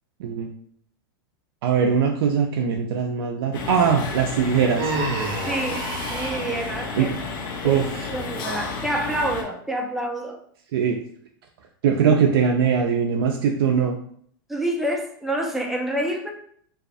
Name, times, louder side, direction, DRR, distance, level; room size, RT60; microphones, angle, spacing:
voice 1, 1.6-4.9 7.0-7.1 7.6-8.1 10.7-11.0 11.8-14.0, right 6 dB, 80° right, 1 dB, 0.4 m, -21 dB
sound 1, 3.5-9.4, left 4 dB, 65° left, 0.6 m, -32 dB
Human voice, 4.8-6.6, right 3 dB, 50° right, 0.7 m, -28 dB
voice 2, 5.4-7.2 7.6-10.4 14.5-16.3, right 1 dB, ahead, 0 dB, 0.4 m, -28 dB
2.4 x 2.3 x 2.5 m, 0.62 s
hypercardioid pair, 120°, 12 cm